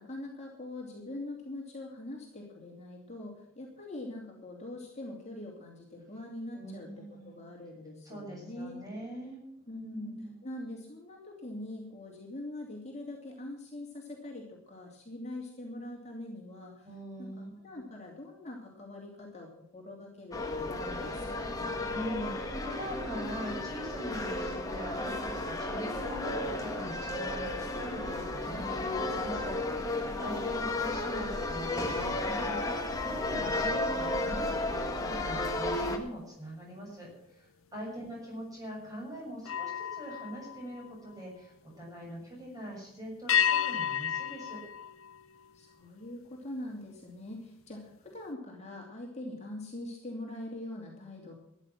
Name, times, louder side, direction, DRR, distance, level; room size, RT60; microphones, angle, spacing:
voice 1, 0.0-8.8 9.7-16.9 17.2-21.8 30.2-30.7 37.9-38.0 45.5-51.3, left 1 dB, 30° left, -2 dB, 2.7 m, -43 dB
voice 2, 6.5-7.4 8.0-10.3 16.8-17.8 21.6-44.6, right 1 dB, 15° right, -2 dB, 6.9 m, -43 dB
sound 1, 20.3-36.0, left 2 dB, 15° left, 1.6 m, -33 dB
sound 2, 30.1-35.7 36.1-36.4 39.4-41.6 43.3-45.9, left 9 dB, 70° left, 0.7 m, -35 dB
14.0 x 9.4 x 7.4 m, 0.79 s
head